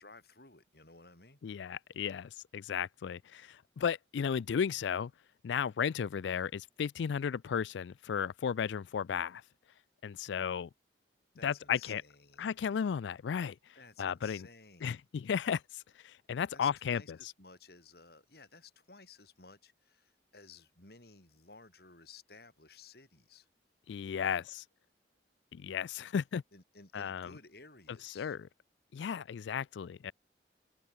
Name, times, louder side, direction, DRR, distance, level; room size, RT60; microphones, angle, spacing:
voice 1, 0.0-1.4 11.3-12.5 13.7-15.0 16.5-23.5 24.3-24.4 26.5-28.4, left 4 dB, 55° left, 4.6 m, -56 dB
voice 2, 1.4-5.1 5.4-9.4 10.0-10.7 11.4-12.0 12.4-13.6 14.0-14.5 14.8-17.0 23.9-24.6 25.5-26.4 26.9-27.4 27.9-28.4 28.9-30.1, left 7 dB, 75° left, 0.4 m, -34 dB
head